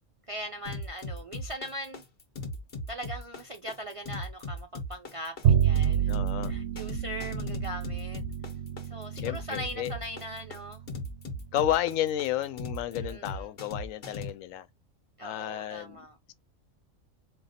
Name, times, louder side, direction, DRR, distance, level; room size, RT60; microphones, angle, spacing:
voice 1, 0.3-2.0 2.9-6.1 6.5-8.2 8.9-10.8 12.9-13.5 15.2-16.2, equal, 45° right, 0.4 m, -40 dB
sound 1, 0.7-14.3, left 1 dB, 50° left, 1.2 m, -38 dB
Bowed string instrument, 5.4-11.9, right 9 dB, 65° right, 0.9 m, -29 dB
voice 2, 6.1-6.6 9.2-9.9 11.5-14.7 15.2-16.0, left 12 dB, 80° left, 1.0 m, -31 dB
4.4 x 2.3 x 4.1 m
omnidirectional pair, 1.4 m